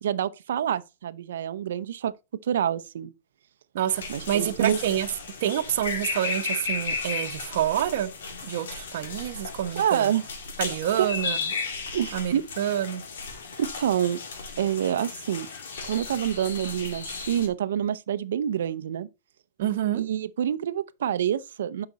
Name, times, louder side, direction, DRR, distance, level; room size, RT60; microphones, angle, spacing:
voice 1, 0.0-2.1 2.4-3.1 4.1-4.8 9.8-10.2 11.0-11.1 11.9-12.4 13.6-14.2 14.6-15.5 15.8-19.1 19.9-21.9, right 10 dB, 90° right, 0.6 m, -27 dB
voice 2, 3.7-5.1 5.4-8.1 8.4-10.1 10.6-11.4 12.1-13.0 19.6-20.0, right 11 dB, 55° right, 1.0 m, -27 dB
sound 1, 3.9-17.5, left 4 dB, 90° left, 2.6 m, -35 dB
10.5 x 5.9 x 4.0 m
supercardioid pair, 175°, 0 cm